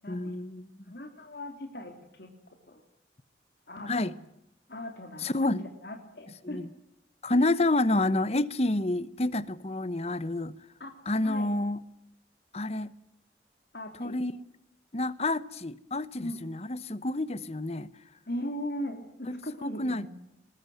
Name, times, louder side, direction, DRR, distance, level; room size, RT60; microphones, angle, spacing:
voice 1, 0.1-0.8 3.9-4.1 5.2-5.7 6.4-6.7 7.2-10.6 11.1-11.8 12.5-12.9 14.0-14.4 14.9-17.9 19.3-20.1, left 2 dB, 35° left, 1.0 m, -29 dB
voice 2, 0.9-2.8 3.7-4.1 4.7-6.6 7.3-7.5 10.8-10.9 11.2-11.5 13.7-14.2 16.2-16.4 18.3-20.1, left 1 dB, 60° left, 3.0 m, -39 dB
22.0 x 20.5 x 9.2 m
head